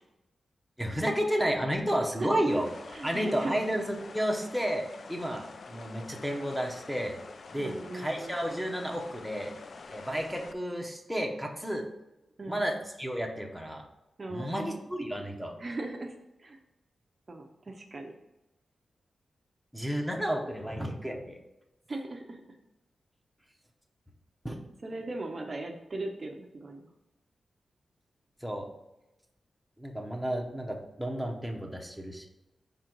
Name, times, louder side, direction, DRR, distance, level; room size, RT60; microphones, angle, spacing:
voice 1, 0.8-2.7 3.0-7.2 7.5-9.5 9.9-11.9 12.5-13.8 14.3-15.5 19.7-21.4 24.4-24.6 28.4-28.7 29.8-32.3, equal, ahead, 2 dB, 0.7 m, -32 dB
sound 1, 2.5-10.5, left 4 dB, 50° left, 0.4 m, -47 dB
voice 2, 2.9-3.6 7.6-8.3 12.4-12.6 14.2-14.8 15.6-16.1 16.4-16.6 17.3-18.1 21.9-22.4 24.8-26.9, right 2 dB, 30° right, 2 dB, 0.6 m, -38 dB
5.5 x 3.8 x 4.4 m, 0.96 s
wide cardioid pair, 150°, 0 cm